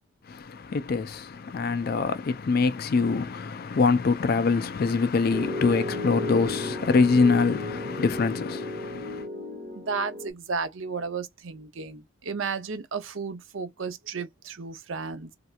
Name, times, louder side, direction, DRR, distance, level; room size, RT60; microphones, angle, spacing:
voice 1, 0.3-9.3, left 4 dB, 45° left, 0.3 m, -24 dB
Piano, 5.3-10.3, left 2 dB, 30° right, 1.1 m, -34 dB
voice 2, 9.7-15.3, right 5 dB, 60° right, 0.7 m, -33 dB
3.2 x 2.8 x 2.3 m
head